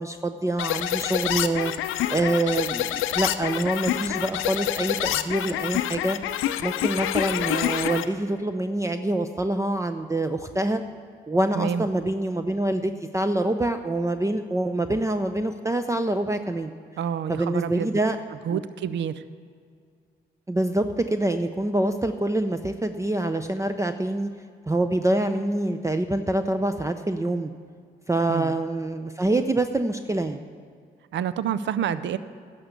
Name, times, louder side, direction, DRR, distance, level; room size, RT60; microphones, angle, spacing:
voice 1, 0.0-1.7 2.1-6.2 6.6-10.8 11.3-16.7 17.3-18.2 18.5-18.6 20.5-24.3 24.7-27.5 28.1-30.4, right 1 dB, 15° right, 8 dB, 0.6 m, -25 dB
sound 1, 0.6-8.0, left 12 dB, 80° left, 0.5 m, -27 dB
voice 2, 11.5-11.8 17.0-18.0 18.4-19.2 28.3-28.6 31.1-32.2, right 8 dB, 65° right, 14 dB, 0.5 m, -28 dB
11.0 x 6.7 x 8.2 m, 2.2 s
supercardioid pair, 55°, 21 cm